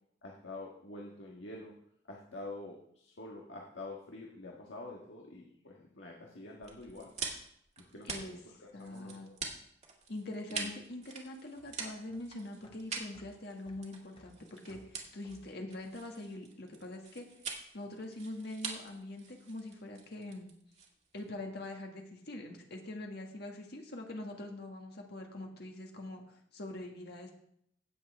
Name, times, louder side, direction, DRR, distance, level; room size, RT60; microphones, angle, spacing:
voice 1, 0.2-1.7 2.1-7.1 7.8-9.3 10.5-10.7, left 2 dB, 80° left, -2 dB, 1.5 m, -47 dB
sound 1, 6.6-21.3, right 5 dB, 40° right, 1.9 m, -44 dB
voice 2, 8.7-9.3 10.1-17.3 17.7-20.5 21.1-27.3, left 1 dB, 60° left, 2 dB, 1.8 m, -43 dB
sound 2, 10.2-16.7, left 1 dB, 30° left, 1.3 m, -63 dB
16.5 x 7.3 x 3.5 m, 0.71 s
head